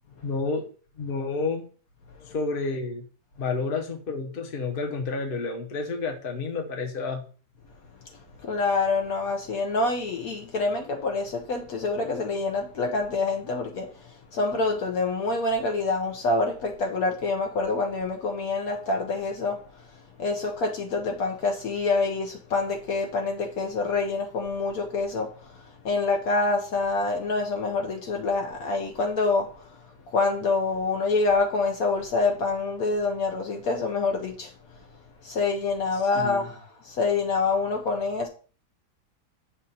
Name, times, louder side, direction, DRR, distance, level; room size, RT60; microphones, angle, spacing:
voice 1, 0.2-0.7 1.0-1.7 2.3-3.0 3.4-7.2 36.1-36.5, left 4 dB, 40° left, 1.0 m, -30 dB
voice 2, 8.4-19.9 20.2-29.7 30.1-34.5 35.2-38.3, left 3 dB, 65° left, 1.2 m, -26 dB
6.7 x 2.5 x 5.5 m
omnidirectional pair, 1.8 m